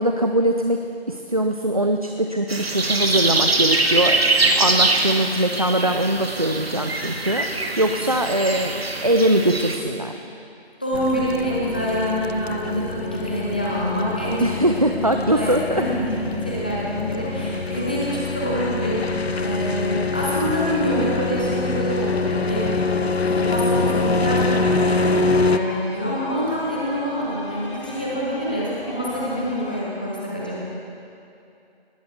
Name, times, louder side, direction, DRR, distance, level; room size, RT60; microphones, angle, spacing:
voice 1, 0.0-4.2 4.5-10.2 14.4-15.8, right 1 dB, 35° right, 4 dB, 0.5 m, -22 dB
sound 1, 2.5-9.8, right 2 dB, 70° right, 1.4 m, -23 dB
voice 2, 10.8-14.4 14.9-22.9 23.2-30.6, equal, 10° left, -6 dB, 0.8 m, -26 dB
sound 2, 10.9-25.6, left 3 dB, 80° left, 0.8 m, -25 dB
sound 3, 23.6-29.8, left 1 dB, 30° left, 1.9 m, -38 dB
19.5 x 15.0 x 3.5 m, 2.7 s
figure-of-eight pair, 165°, 31 cm